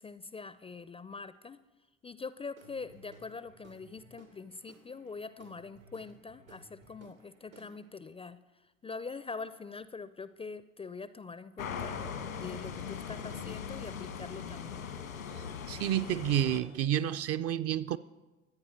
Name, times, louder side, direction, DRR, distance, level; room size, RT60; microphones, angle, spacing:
voice 1, 0.0-1.6 2.0-12.0 12.4-14.9, left 4 dB, 15° left, 0.5 m, -44 dB
Guitar / Drum, 2.5-8.1, right 2 dB, 90° right, 2.7 m, -58 dB
sound 1, 11.6-16.6, left 7 dB, 85° left, 1.6 m, -40 dB
voice 2, 15.7-18.0, right 11 dB, 35° right, 0.5 m, -30 dB
23.5 x 8.8 x 4.4 m
hypercardioid pair, 70°, 40 cm